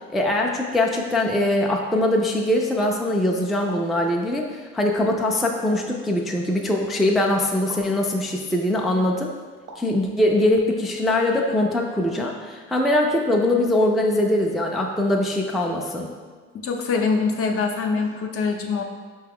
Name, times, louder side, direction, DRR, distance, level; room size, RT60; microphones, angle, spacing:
voice 1, 0.1-9.3 9.8-16.1, left 1 dB, ahead, 0 dB, 0.3 m, -22 dB
sound 1, 3.7-4.0 5.7-6.0 7.7-7.9 9.7-10.0, right 3 dB, 85° right, 0.7 m, -41 dB
voice 2, 16.5-18.8, left 4 dB, 50° left, 3 dB, 0.6 m, -24 dB
5.7 x 2.3 x 3.4 m, 1.5 s
cardioid pair, 90°, 30 cm